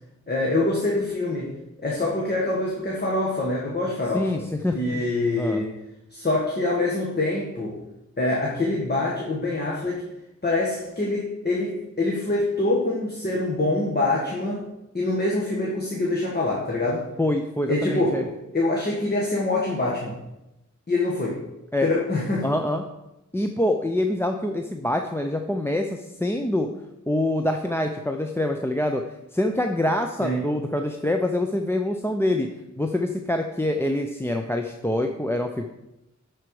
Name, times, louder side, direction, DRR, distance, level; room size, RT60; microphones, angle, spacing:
voice 1, 0.3-1.5 1.8-4.4 4.7-5.7 6.1-7.8 8.2-10.0 10.4-14.6 14.9-17.1 17.7-20.2 20.9-21.4 21.8-22.5 30.2-30.4, left 2 dB, 30° left, -4 dB, 1.6 m, -25 dB
voice 2, 4.1-5.0 5.4-5.6 17.2-18.2 21.7-21.9 22.4-22.8 23.3-26.7 27.1-29.0 29.3-32.5 32.8-35.7, left 1 dB, 10° left, 4 dB, 0.5 m, -25 dB
11.0 x 4.6 x 4.8 m, 0.92 s
wide cardioid pair, 95°, 31 cm